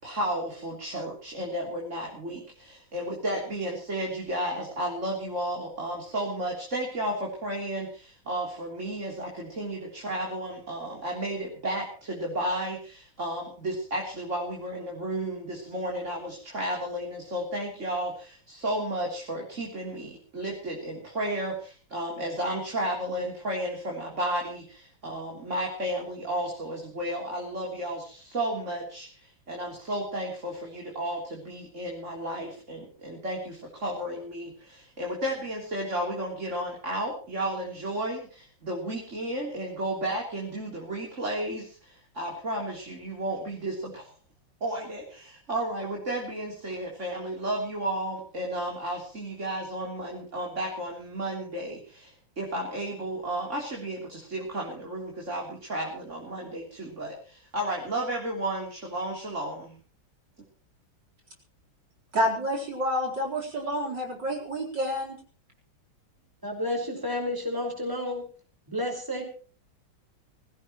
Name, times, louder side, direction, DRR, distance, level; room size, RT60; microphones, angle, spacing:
voice 1, 0.0-44.1 44.6-59.8, right 1 dB, 35° right, -1 dB, 3.9 m, -33 dB
voice 2, 62.1-65.2, equal, 60° right, -1 dB, 4.8 m, -28 dB
voice 3, 66.4-68.2 68.7-69.2, left 1 dB, 10° right, 3 dB, 5.0 m, -31 dB
23.5 x 16.0 x 3.1 m, 0.39 s
omnidirectional pair, 2.2 m